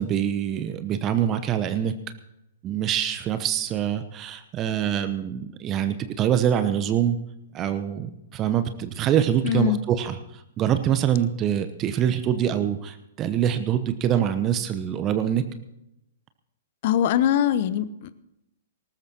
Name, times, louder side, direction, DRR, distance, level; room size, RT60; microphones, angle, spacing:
voice 1, 0.0-1.9 2.6-7.2 7.5-15.4, right 9 dB, 25° right, 0.9 m, -25 dB
voice 2, 9.4-9.8 16.8-18.1, left 10 dB, 45° left, 0.8 m, -22 dB
19.5 x 18.5 x 2.9 m
figure-of-eight pair, 110°, 0 cm